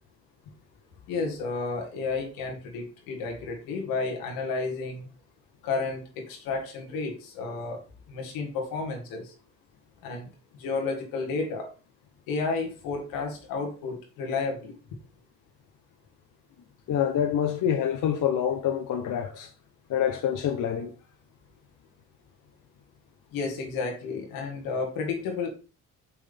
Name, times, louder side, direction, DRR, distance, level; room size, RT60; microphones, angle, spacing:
voice 1, 1.1-5.1 5.6-7.8 8.1-9.3 10.0-10.3 10.6-11.7 12.3-14.7 23.3-25.5, left 4 dB, 90° left, 1.8 m, -31 dB
voice 2, 16.9-19.5 19.9-20.9, left 9 dB, 65° left, 0.9 m, -26 dB
6.3 x 5.7 x 3.5 m
supercardioid pair, 65°, 34 cm